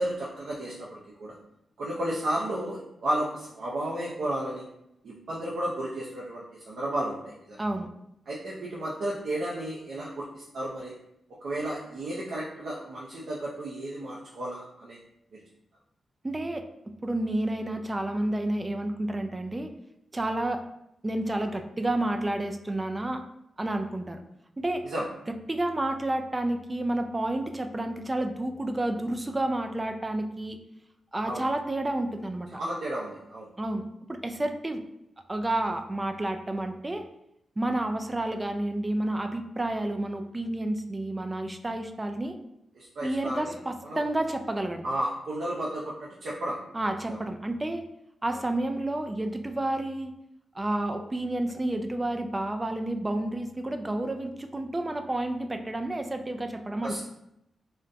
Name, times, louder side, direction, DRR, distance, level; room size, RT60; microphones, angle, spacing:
voice 1, 0.0-1.4 1.8-4.6 5.0-7.6 8.3-10.9 11.4-15.0 15.3-15.4 24.8-25.1 31.3-31.4 32.5-33.5 42.8-43.5 43.8-44.0 44.8-46.6 47.1-47.2 48.3-48.4 56.8-57.0, right 1 dB, 75° right, -5 dB, 0.5 m, -33 dB
voice 2, 7.6-7.9 16.2-16.6 17.0-19.7 20.1-20.6 21.0-23.2 23.6-24.2 24.6-24.8 25.3-30.6 31.1-32.6 33.6-34.8 35.3-37.0 37.6-42.4 43.0-44.9 46.7-47.8 48.2-50.1 50.5-57.0, right 1 dB, 25° right, 6 dB, 0.3 m, -30 dB
3.8 x 2.1 x 2.5 m, 0.81 s
cardioid pair, 65°, 0 cm